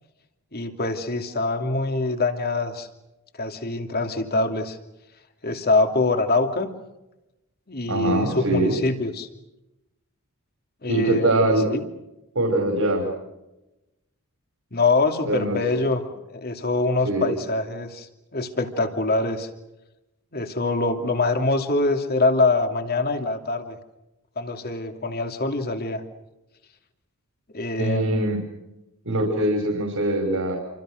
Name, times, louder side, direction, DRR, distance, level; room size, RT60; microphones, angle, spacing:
voice 1, 0.5-2.9 3.4-4.8 5.4-6.7 7.7-9.3 10.8-11.8 14.7-16.0 16.3-19.5 20.3-23.8 24.4-26.0 27.5-28.4, left 3 dB, 45° left, 6 dB, 2.7 m, -24 dB
voice 2, 7.9-8.8 10.9-11.7 12.4-13.1 15.3-15.6 17.0-17.3 27.8-28.4 29.0-30.6, right 1 dB, 65° right, 2 dB, 5.6 m, -22 dB
28.5 x 25.5 x 6.5 m, 0.95 s
head